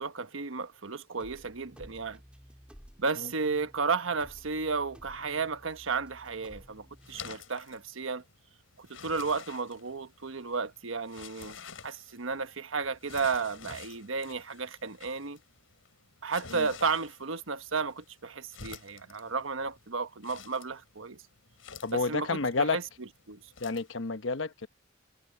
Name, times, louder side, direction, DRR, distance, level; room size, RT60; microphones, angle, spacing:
voice 1, 0.0-2.2 3.0-8.2 8.8-15.4 16.2-21.2 21.9-22.8 23.3-23.4, right 4 dB, 90° right, 1.2 m, -33 dB
sound 1, 1.2-7.2, equal, 5° right, 4.5 m, -54 dB
sound 2, 6.1-23.9, left 6 dB, 90° left, 5.7 m, -51 dB
voice 2, 21.8-22.8 23.6-24.7, left 3 dB, 70° left, 1.0 m, -30 dB
head